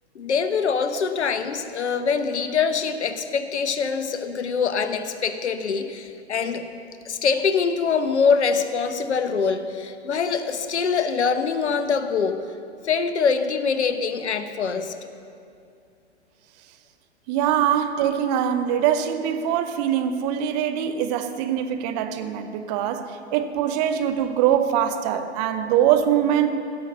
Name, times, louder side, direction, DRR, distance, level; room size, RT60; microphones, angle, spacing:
voice 1, 0.1-6.7 7.0-12.4 12.8-14.9, left 5 dB, 75° left, 10 dB, 1.0 m, -24 dB
voice 2, 17.3-26.5, right 9 dB, 35° right, 8 dB, 0.9 m, -23 dB
16.5 x 6.9 x 6.7 m, 2.4 s
hypercardioid pair, 115°, 34 cm